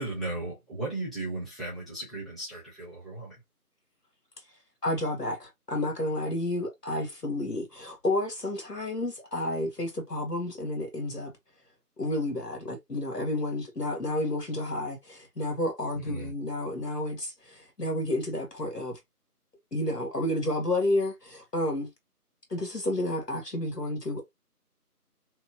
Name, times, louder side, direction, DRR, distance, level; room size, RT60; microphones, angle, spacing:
voice 1, 0.0-3.3 16.1-16.3, right 2 dB, ahead, 1.0 m, -36 dB
voice 2, 4.8-11.3 12.0-19.0 19.7-21.9 22.5-24.3, left 1 dB, 80° left, 1.6 m, -31 dB
3.0 x 2.8 x 2.5 m
figure-of-eight pair, 175°, 47 cm